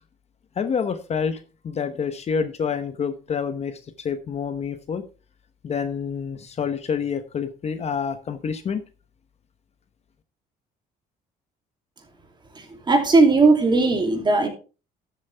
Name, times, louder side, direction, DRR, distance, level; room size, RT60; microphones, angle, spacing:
voice 1, 0.6-5.0 5.6-8.8, left 6 dB, 40° left, 10 dB, 0.9 m, -28 dB
voice 2, 12.5-14.5, right 3 dB, 25° right, 3 dB, 2.8 m, -18 dB
12.5 x 7.4 x 3.4 m, 0.34 s
cardioid pair, 110°, 17 cm